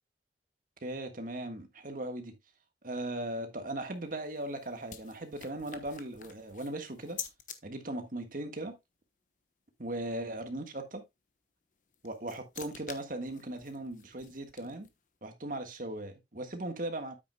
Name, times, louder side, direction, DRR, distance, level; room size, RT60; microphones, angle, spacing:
voice 1, 0.8-2.4 2.8-7.2 7.6-8.8 9.8-11.0 12.0-14.9 15.2-17.1, right 1 dB, 50° right, 1.5 m, -38 dB
sound 1, 3.9-7.6 11.7-15.1, left 8 dB, 45° left, 1.0 m, -48 dB
9.3 x 8.4 x 2.3 m
head